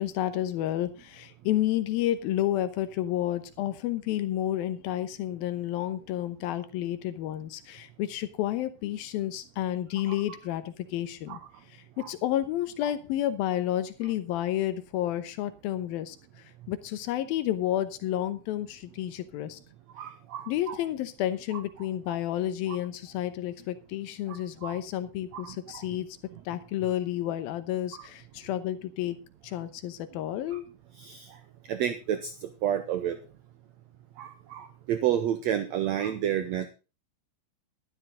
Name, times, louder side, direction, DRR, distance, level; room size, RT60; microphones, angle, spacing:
voice 1, 0.0-11.4 11.7-19.6 20.5-26.1 26.5-29.2 29.4-30.7, left 12 dB, 85° left, 2.8 m, -31 dB
voice 2, 20.0-20.8 21.5-21.6 22.1-22.2 22.7-22.8 24.6-24.8 25.3-25.8 30.5-30.6 31.0-31.3 31.7-33.2 34.2-36.7, right 10 dB, 75° right, 1.7 m, -30 dB
12.0 x 12.0 x 3.8 m
omnidirectional pair, 4.1 m